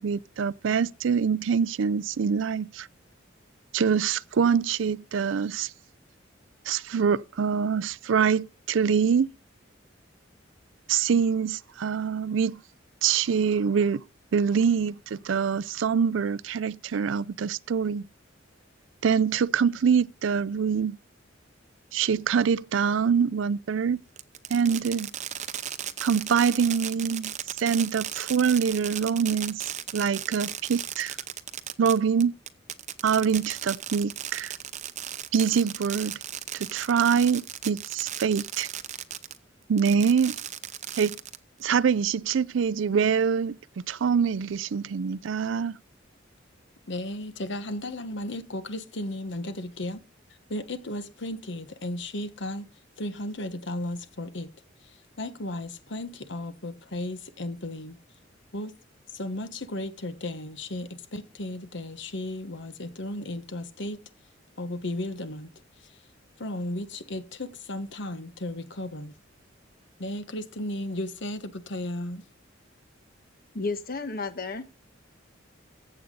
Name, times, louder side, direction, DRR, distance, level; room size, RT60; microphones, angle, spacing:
voice 1, 0.0-2.9 3.7-5.7 6.7-9.3 10.9-12.6 13.0-14.0 14.3-18.1 19.0-21.0 21.9-24.0 24.5-25.1 26.0-29.6 29.9-31.2 31.8-32.4 33.0-34.5 35.3-36.2 36.5-38.7 39.7-40.4 41.0-41.2 41.6-43.6 43.9-45.8, right 6 dB, 75° right, 0.4 m, -25 dB
Fireworks, 24.2-39.4 39.8-41.6, right 10 dB, 40° right, 0.7 m, -36 dB
voice 2, 46.9-50.0 50.5-52.7 53.0-54.5 54.8-58.0 58.5-58.7 59.1-64.0 64.6-65.5 65.8-66.0 66.4-69.1 70.0-72.2, left 1 dB, 65° left, 1.3 m, -35 dB
voice 3, 73.5-74.6, left 3 dB, 50° left, 1.2 m, -32 dB
14.5 x 8.0 x 3.9 m
head